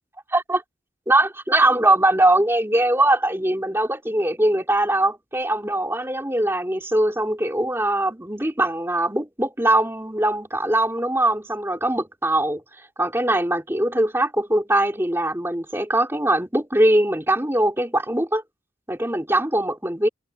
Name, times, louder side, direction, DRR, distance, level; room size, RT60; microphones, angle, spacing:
voice 1, 0.3-0.6 1.1-12.6 13.0-18.4 18.9-20.1, right 1 dB, 15° right, 3.0 m, -21 dB
head